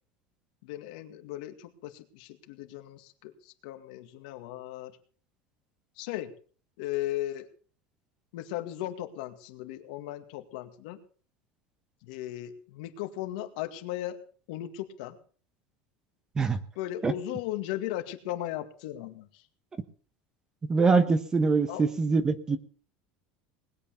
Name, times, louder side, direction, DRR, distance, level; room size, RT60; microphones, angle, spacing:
voice 1, 0.6-5.0 6.0-6.3 6.8-7.5 8.3-11.0 12.0-14.2 14.5-15.2 16.8-19.4 21.7-21.8, left 13 dB, 70° left, 7 dB, 2.1 m, -37 dB
voice 2, 20.7-22.6, right 4 dB, 15° right, 13 dB, 1.1 m, -24 dB
20.0 x 8.5 x 6.9 m, 0.43 s
cardioid pair, 160°, 4 cm